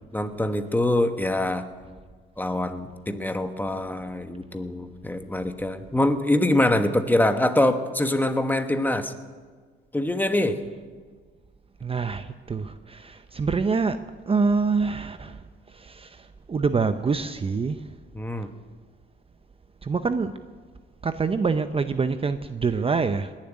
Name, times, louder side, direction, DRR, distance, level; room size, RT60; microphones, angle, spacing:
voice 1, 0.1-1.7 2.4-9.1 9.9-10.6 18.1-18.5, left 1 dB, 10° left, 8 dB, 1.2 m, -24 dB
voice 2, 11.8-17.9 19.8-20.4 21.0-23.3, right 4 dB, 30° right, 10 dB, 0.7 m, -26 dB
19.5 x 7.4 x 9.9 m, 1.5 s
cardioid pair, 90°, 20 cm